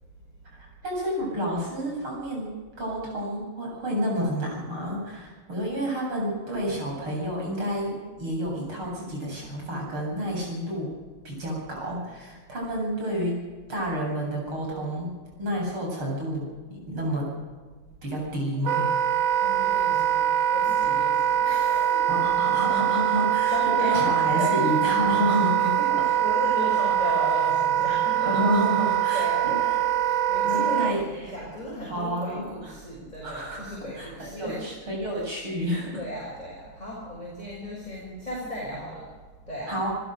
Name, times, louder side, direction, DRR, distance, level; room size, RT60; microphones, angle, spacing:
voice 1, 0.5-10.9 11.2-13.4 13.7-15.1 15.4-16.4 16.7-17.3 18.0-18.9 22.1-23.5 23.8-25.7 28.2-29.5 30.4-31.0 31.9-32.5 33.2-36.0 39.7-39.9, equal, 85° right, -2 dB, 8.9 m, -29 dB
Wind instrument woodwind instrument, 18.7-30.9, right 10 dB, 50° right, 1.2 m, -23 dB
voice 2, 19.3-22.3 22.7-23.1 23.4-25.0 25.3-34.8 35.1-35.3 35.9-39.9, equal, 20° left, -5 dB, 6.7 m, -36 dB
28.5 x 15.0 x 6.7 m, 1.5 s
omnidirectional pair, 2.3 m